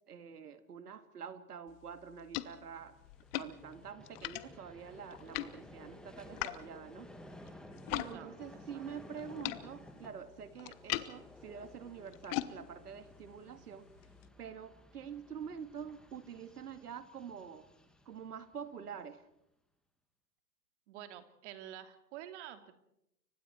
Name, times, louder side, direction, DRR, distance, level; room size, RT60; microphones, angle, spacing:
voice 1, 0.1-3.0 3.4-7.1 7.9-13.9 14.4-17.7 18.1-19.2, right 7 dB, 75° right, 10 dB, 2.4 m, -46 dB
sound 1, 1.7-8.1 8.4-14.3, left 17 dB, 40° left, 1.2 m, -43 dB
Vehicle, 2.8-19.1, left 1 dB, ahead, 2.4 m, -56 dB
voice 2, 20.9-22.7, right 11 dB, 50° right, 8 dB, 2.7 m, -48 dB
30.0 x 24.0 x 4.6 m, 0.83 s
hypercardioid pair, 120°, 46 cm